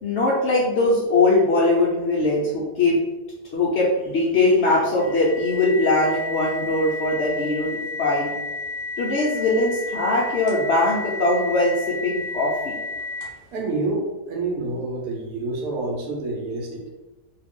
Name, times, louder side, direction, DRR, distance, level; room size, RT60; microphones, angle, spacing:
voice 1, 0.0-3.0 3.5-7.7 8.0-8.3 9.0-12.8, left 2 dB, 75° left, -4 dB, 0.6 m, -21 dB
sound 1, 5.0-13.5, left 3 dB, 45° left, 0.8 m, -32 dB
voice 2, 13.5-16.8, right 2 dB, 70° right, 0 dB, 1.1 m, -28 dB
2.6 x 2.4 x 3.5 m, 1.1 s
omnidirectional pair, 1.8 m